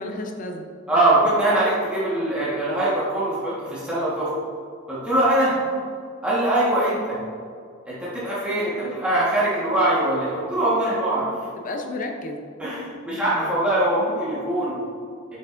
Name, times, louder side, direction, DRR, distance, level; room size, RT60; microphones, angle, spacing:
voice 1, 0.0-0.7 8.5-9.0 11.6-12.4 13.1-13.5, left 2 dB, 40° left, 3 dB, 0.6 m, -33 dB
voice 2, 0.9-4.3 4.9-5.6 6.2-7.2 7.8-11.3 12.6-14.7, right 1 dB, 5° right, -10 dB, 1.3 m, -22 dB
8.5 x 5.7 x 2.5 m, 2.3 s
head